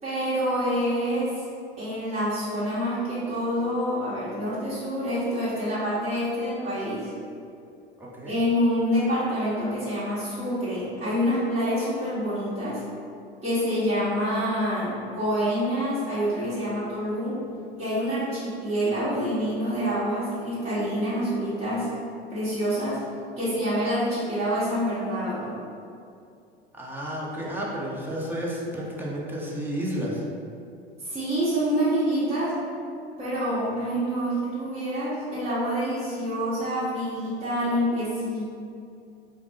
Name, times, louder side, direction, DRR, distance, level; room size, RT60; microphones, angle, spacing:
voice 1, 0.0-1.4 1.8-7.1 8.2-12.8 13.4-17.4 17.8-21.9 22.3-23.0 23.4-25.6 31.0-32.5 33.2-38.5, equal, 20° right, -13 dB, 1.5 m, -27 dB
voice 2, 8.0-8.4 26.7-30.2, equal, 5° right, -5 dB, 0.8 m, -31 dB
4.7 x 2.1 x 3.6 m, 2.5 s
figure-of-eight pair, 80°, 31 cm